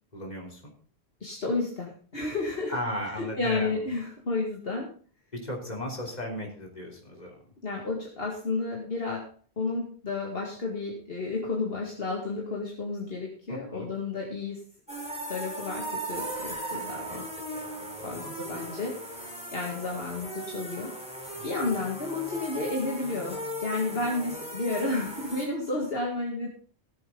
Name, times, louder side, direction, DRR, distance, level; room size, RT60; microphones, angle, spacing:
voice 1, 0.1-0.7 2.7-3.8 5.4-7.3 13.5-13.9 17.1-17.2 18.0-18.7 21.4-21.7, left 1 dB, 40° left, 0 dB, 3.5 m, -36 dB
voice 2, 1.2-2.8 3.1-4.9 7.6-9.3 9.6-14.6 15.3-17.3 18.0-21.0 21.4-26.5, left 3 dB, 60° left, -1 dB, 2.2 m, -32 dB
sound 1, 14.9-25.5, right 1 dB, 5° right, 2.9 m, -37 dB
17.5 x 7.9 x 3.8 m, 0.42 s
omnidirectional pair, 1.1 m